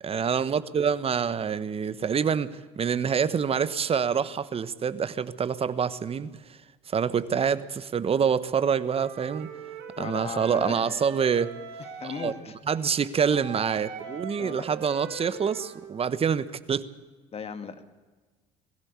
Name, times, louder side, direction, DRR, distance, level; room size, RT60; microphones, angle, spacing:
voice 1, 0.0-6.3 6.9-9.5 10.0-11.5 12.2-12.3 12.7-16.9, right 7 dB, 35° right, 15 dB, 1.3 m, -26 dB
Wind instrument woodwind instrument, 8.8-12.5 13.3-15.9, right 6 dB, 65° right, 3.9 m, -41 dB
voice 2, 10.0-10.9 12.0-12.6 14.4-14.7 17.3-17.8, left 6 dB, 35° left, 10 dB, 2.2 m, -37 dB
21.0 x 16.0 x 8.3 m, 1.3 s
hypercardioid pair, 65°, 17 cm